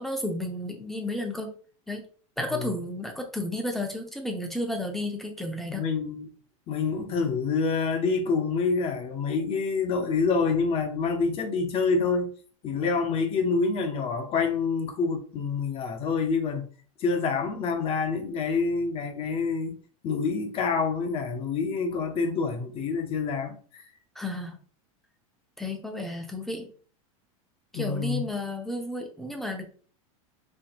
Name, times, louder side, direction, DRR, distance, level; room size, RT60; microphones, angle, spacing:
voice 1, 0.0-1.5 1.9-2.1 2.4-5.9 24.2-24.6 25.6-26.7 27.7-29.7, left 1 dB, ahead, 0.7 m, -32 dB
voice 2, 5.7-6.3 6.7-12.3 12.6-16.7 17.0-19.8 20.0-23.8 27.7-28.2, left 4 dB, 35° left, 0.8 m, -27 dB
4.5 x 2.8 x 2.9 m
supercardioid pair, 135°, 17 cm